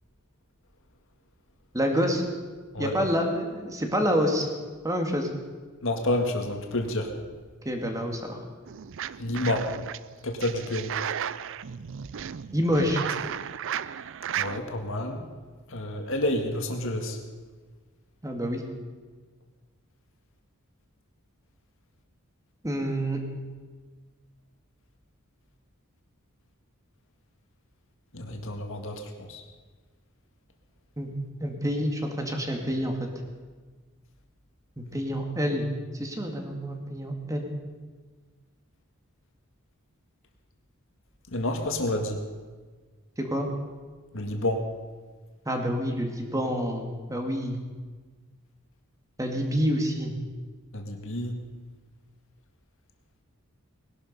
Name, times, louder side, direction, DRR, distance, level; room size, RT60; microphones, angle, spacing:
voice 1, 1.7-2.3 2.8-4.5 4.8-5.3 7.6-8.4 12.5-13.0 18.2-18.6 22.6-23.2 31.0-31.1 31.4-33.1 34.8-37.5 43.2-43.5 45.5-47.6 49.2-50.1, equal, 15° right, 3 dB, 2.1 m, -27 dB
voice 2, 5.8-7.2 9.2-9.7 10.2-10.9 14.4-15.2 15.7-17.2 28.1-29.4 41.3-42.2 44.1-44.7 50.7-51.4, left 1 dB, 65° left, 4 dB, 2.0 m, -29 dB
sound 1, 8.7-10.0 10.4-14.6, right 9 dB, 65° right, 0.5 m, -34 dB
20.0 x 12.0 x 5.5 m, 1.4 s
head